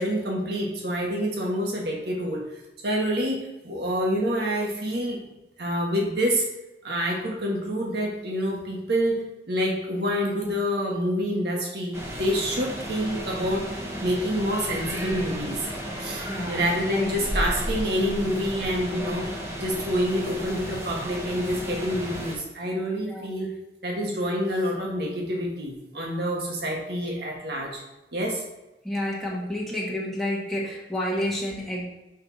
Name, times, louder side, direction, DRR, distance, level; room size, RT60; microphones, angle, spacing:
voice 1, 0.0-2.4 2.8-5.2 5.6-6.4 6.8-13.7 14.0-15.7 16.0-23.5 23.8-27.8 28.1-28.4, equal, 65° right, -1 dB, 1.6 m, -27 dB
sound 1, 11.9-22.4, equal, 15° right, 1.3 m, -33 dB
voice 2, 16.3-16.6 16.9-17.1 23.1-23.3 28.8-31.9, left 1 dB, ahead, -5 dB, 1.3 m, -29 dB
5.5 x 5.4 x 4.1 m, 0.98 s
head